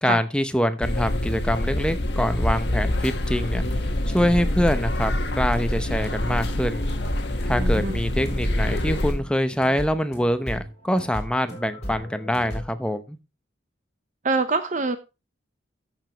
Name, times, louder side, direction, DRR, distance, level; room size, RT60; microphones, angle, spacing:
voice 1, 0.0-3.6 4.1-6.8 7.4-13.2, equal, 5° left, 0.7 m, -25 dB
sound 1, 0.8-9.1, left 1 dB, 60° left, 1.4 m, -25 dB
sound 2, 3.6-12.6, equal, 35° left, 4.5 m, -37 dB
voice 2, 7.6-8.0 14.2-15.0, right 3 dB, 40° right, 0.7 m, -24 dB
13.5 x 7.1 x 3.0 m
head